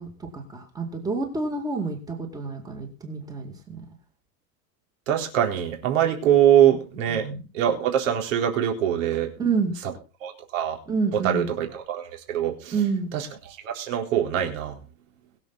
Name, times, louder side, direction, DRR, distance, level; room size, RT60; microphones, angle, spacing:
voice 1, 0.0-3.8 7.1-7.4 9.4-9.7 10.9-11.5 12.7-13.1, right 4 dB, 10° right, 4 dB, 2.2 m, -28 dB
voice 2, 5.1-7.3 7.5-9.3 10.2-10.8 11.1-12.7 13.1-13.3 13.6-14.8, right 10 dB, 55° right, 3 dB, 4.0 m, -23 dB
22.0 x 7.5 x 4.0 m, 0.33 s
supercardioid pair, 175°, 45 cm